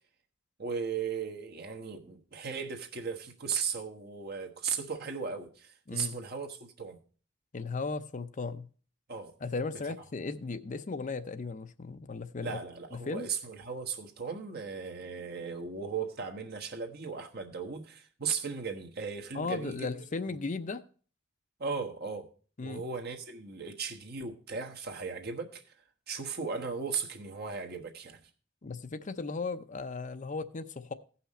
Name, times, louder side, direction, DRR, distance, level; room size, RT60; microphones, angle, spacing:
voice 1, 0.6-7.0 9.1-9.3 12.4-19.9 21.6-22.3 22.6-25.6 26.1-28.2, right 5 dB, 55° right, 1.3 m, -37 dB
voice 2, 7.5-8.7 9.4-12.6 12.9-13.3 19.3-20.8 22.6-22.8 28.6-30.9, left 4 dB, 40° left, 0.6 m, -36 dB
16.0 x 5.8 x 4.2 m
head